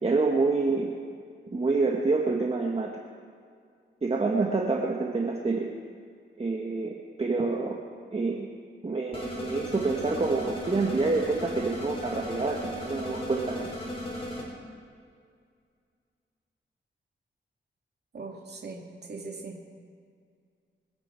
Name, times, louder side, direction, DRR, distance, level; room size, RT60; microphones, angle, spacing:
voice 1, 0.0-0.9 1.5-3.0 4.0-5.7 6.4-6.9 7.2-7.8 8.1-8.5 8.8-13.7, right 3 dB, 30° right, 0 dB, 1.5 m, -27 dB
sound 1, 9.1-14.4, left 1 dB, 30° left, 5.1 m, -36 dB
voice 2, 18.1-19.6, right 3 dB, 55° right, 0 dB, 2.3 m, -40 dB
26.5 x 9.6 x 4.5 m, 2.2 s
cardioid pair, 85°, 20 cm